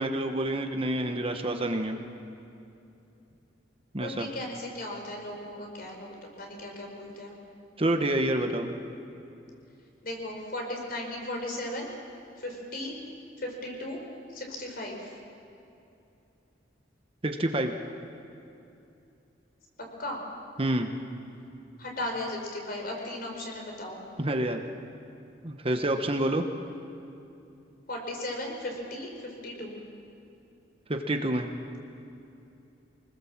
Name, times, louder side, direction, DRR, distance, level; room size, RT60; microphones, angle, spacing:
voice 1, 0.0-2.0 3.9-4.3 7.8-8.7 17.2-17.7 20.6-20.9 24.2-24.6 25.4-26.4 30.9-31.5, right 1 dB, 30° right, 5 dB, 1.1 m, -28 dB
voice 2, 4.0-7.3 10.0-11.9 12.4-12.9 13.4-14.0 14.3-15.1 20.0-20.2 21.8-24.0 27.9-29.8, left 1 dB, 50° left, 1 dB, 4.8 m, -36 dB
25.5 x 20.0 x 7.4 m, 2.8 s
head